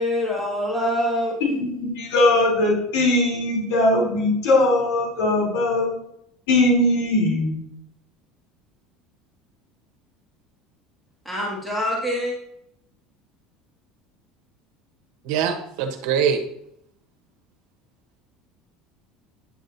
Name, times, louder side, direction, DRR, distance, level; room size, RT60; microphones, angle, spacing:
voice 1, 0.0-1.6 11.3-12.3, left 1 dB, 5° left, -5 dB, 1.9 m, -25 dB
voice 2, 1.8-5.9 6.5-7.6, left 1 dB, 80° left, -3 dB, 3.4 m, -20 dB
voice 3, 15.2-16.4, right 7 dB, 75° right, 5 dB, 1.2 m, -23 dB
9.6 x 7.4 x 2.7 m, 0.75 s
supercardioid pair, 125°, 0 cm